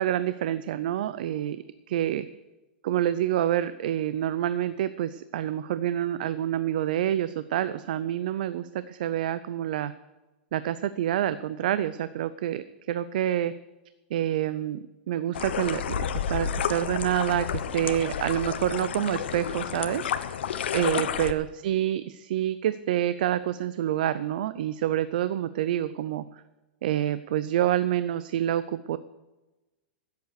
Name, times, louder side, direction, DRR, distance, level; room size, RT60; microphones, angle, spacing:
voice 1, 0.0-2.3 2.8-9.9 10.5-13.5 14.1-20.0 20.7-26.2 26.8-29.0, right 11 dB, 50° right, 14 dB, 0.5 m, -27 dB
sound 1, 15.3-21.3, left 8 dB, 80° left, 1.0 m, -30 dB
15.5 x 8.3 x 6.5 m, 1.1 s
supercardioid pair, 175°, 6 cm